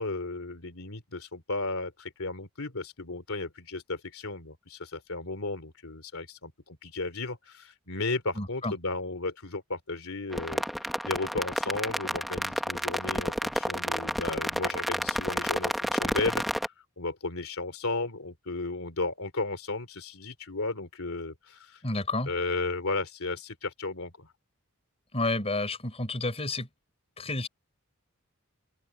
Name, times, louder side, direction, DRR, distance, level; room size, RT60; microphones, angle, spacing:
voice 1, 0.0-16.4 17.0-21.8 22.3-24.3, left 3 dB, 70° left, 3.4 m, -34 dB
voice 2, 8.4-8.7 21.8-22.3 25.1-26.7 27.2-27.5, left 2 dB, 30° left, 4.6 m, -30 dB
sound 1, 10.3-16.7, equal, ahead, 1.5 m, -30 dB
open air
head